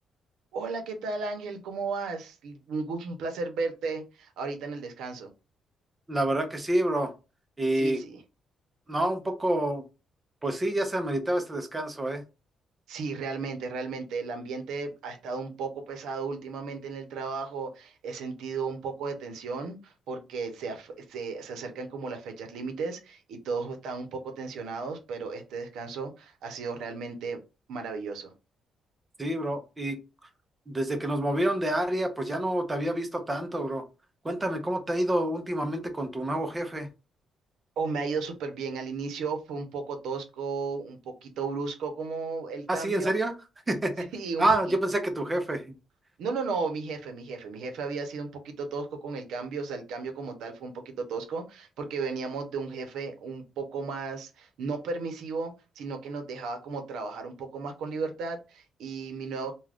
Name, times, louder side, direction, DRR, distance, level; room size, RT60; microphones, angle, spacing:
voice 1, 0.5-5.3 7.8-8.2 12.9-27.4 27.7-28.3 37.8-43.2 44.1-44.4 46.2-59.5, right 4 dB, 90° right, 6 dB, 0.7 m, -34 dB
voice 2, 6.1-7.1 7.6-8.0 8.9-9.8 10.4-12.2 29.2-30.0 30.7-33.8 34.2-36.9 42.7-43.3 43.7-44.1 44.4-45.7, right 1 dB, 15° right, 6 dB, 0.6 m, -28 dB
2.4 x 2.2 x 3.4 m, 0.29 s
cardioid pair, 155°, 0 cm